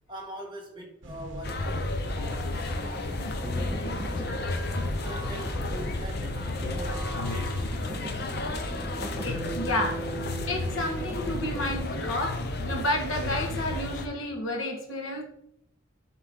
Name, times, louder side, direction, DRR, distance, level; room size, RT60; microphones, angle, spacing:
voice 1, 0.1-4.6 5.0-6.4 6.7-8.2, equal, 25° right, -2 dB, 1.9 m, -44 dB
sound 1, 1.0-8.9, right 1 dB, 70° right, 1.0 m, -44 dB
sound 2, 1.4-14.1, left 2 dB, 55° left, 0.9 m, -32 dB
sound 3, 2.7-12.2, right 2 dB, 5° right, 0.5 m, -40 dB
voice 2, 9.2-10.0 10.5-15.2, left 1 dB, 85° left, 2 dB, 1.8 m, -31 dB
11.5 x 4.0 x 3.9 m, 0.75 s
head